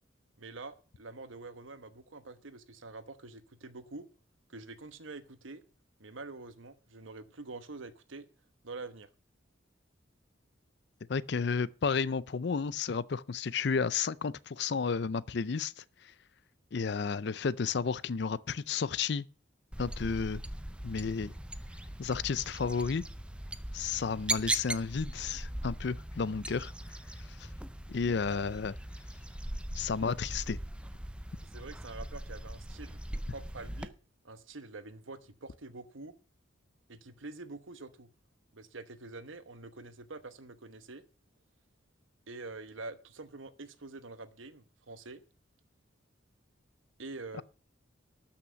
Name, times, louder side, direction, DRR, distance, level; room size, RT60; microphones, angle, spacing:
voice 1, 0.4-4.1 4.5-5.6 6.0-8.3 8.6-9.1 31.5-33.0 33.3-33.9 34.2-36.1 36.9-38.1 38.5-41.0 42.3-45.2 47.0-47.4, right 3 dB, 75° right, 1.1 m, -46 dB
voice 2, 11.1-15.8 16.7-19.3 19.8-20.4 20.8-21.3 22.0-23.0 23.7-26.7 27.4-27.5 27.9-28.7 29.7-30.6, left 5 dB, 55° left, 0.5 m, -32 dB
sound 1, 19.7-33.9, right 1 dB, 5° right, 0.4 m, -40 dB
12.5 x 5.9 x 6.8 m
head